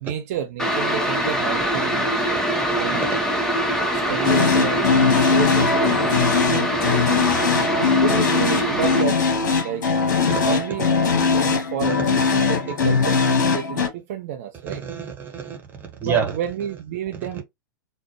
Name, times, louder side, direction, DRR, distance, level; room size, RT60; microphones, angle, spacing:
voice 1, 0.0-2.1 2.7-3.4 3.9-6.7 8.0-9.9 10.4-14.8 16.0-17.4, right 9 dB, 50° right, 0.6 m, -30 dB
sound 1, 0.6-9.0, equal, 5° left, 0.8 m, -23 dB
voice 2, 2.3-3.0 10.3-10.5 14.7-15.6 16.0-16.2, right 7 dB, 20° right, 1.3 m, -28 dB
sound 2, 4.2-13.9, left 5 dB, 60° left, 1.0 m, -20 dB
4.0 x 2.1 x 3.1 m
figure-of-eight pair, 95°, 11 cm